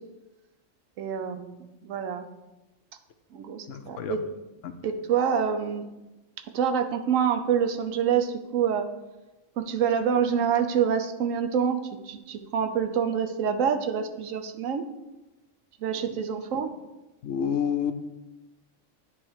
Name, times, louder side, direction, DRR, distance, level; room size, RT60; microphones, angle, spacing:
voice 1, 1.0-2.2 3.3-4.2 4.8-5.8 6.5-8.9 9.6-11.8 12.1-14.8 15.8-16.7, right 7 dB, 80° right, 6 dB, 1.0 m, -26 dB
voice 2, 3.7-4.2 4.6-4.7 16.1-16.2 17.2-17.9, left 8 dB, 75° left, 8 dB, 0.9 m, -29 dB
9.6 x 3.3 x 4.6 m, 1.0 s
omnidirectional pair, 1.4 m